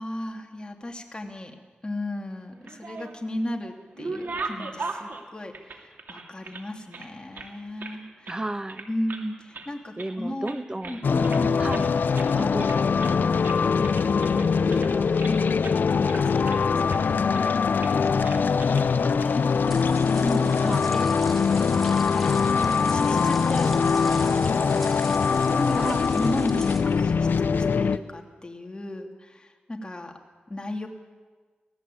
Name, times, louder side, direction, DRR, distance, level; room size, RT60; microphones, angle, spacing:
voice 1, 0.0-1.6 1.8-8.3 8.9-10.6 10.9-11.6 12.3-12.4 13.2-15.7 15.9-17.7 18.1-19.4 20.2-20.4 20.9-21.2 22.9-25.1 25.5-30.1 30.5-30.9, left 1 dB, 25° left, 2 dB, 2.9 m, -35 dB
sound 1, 2.5-3.3 3.7-6.6 6.9-8.0 8.2-8.4 8.7-9.3 9.5-10.2 10.4-11.4 11.7-11.9 12.1-12.3 12.6-13.2 13.4-15.3 15.6-15.8 16.1-17.0 17.3-17.5 17.8-18.0 18.2-18.9 19.2-19.3 20.3-20.6, right 3 dB, 80° right, 2.6 m, -38 dB
voice 2, 8.3-8.9 10.0-11.0 11.6-11.9 12.4-13.0 20.6-20.9 25.8-26.1, right 1 dB, 25° right, 11 dB, 1.1 m, -32 dB
sound 2, 11.0-28.0, left 5 dB, 80° left, 0.7 m, -22 dB
sound 3, 19.4-27.2, equal, ahead, 2.2 m, -41 dB
24.5 x 17.5 x 8.7 m, 1.4 s
wide cardioid pair, 80°, 3 cm